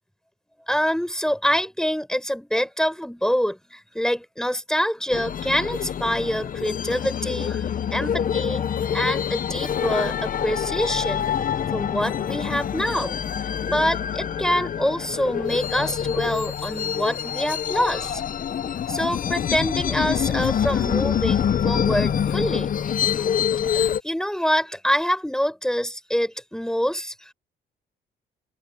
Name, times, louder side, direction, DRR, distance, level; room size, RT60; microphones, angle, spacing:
voice 1, 0.7-7.7 7.9-11.3 11.7-13.2 13.6-18.2 18.9-22.7 23.1-23.3 23.6-27.3, equal, 5° left, 5.2 m, -26 dB
sound 1, 5.1-24.0, left 8 dB, 45° left, 0.7 m, -26 dB
cardioid pair, 90°, 20 cm